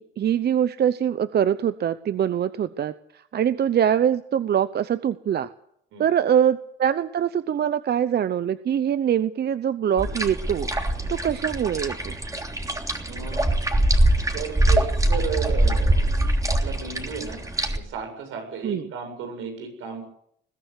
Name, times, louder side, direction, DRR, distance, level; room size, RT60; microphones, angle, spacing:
voice 1, 0.0-5.5 6.0-10.7 11.1-12.2 18.6-18.9, right 9 dB, 55° right, 13 dB, 0.8 m, -23 dB
sound 1, 10.0-17.8, right 1 dB, 15° right, 3.2 m, -23 dB
voice 2, 13.0-13.5 14.3-16.2 16.5-17.4 17.7-20.1, right 6 dB, 90° right, 5 dB, 7.7 m, -34 dB
21.5 x 15.0 x 8.2 m, 0.71 s
cardioid pair, 90°, 20 cm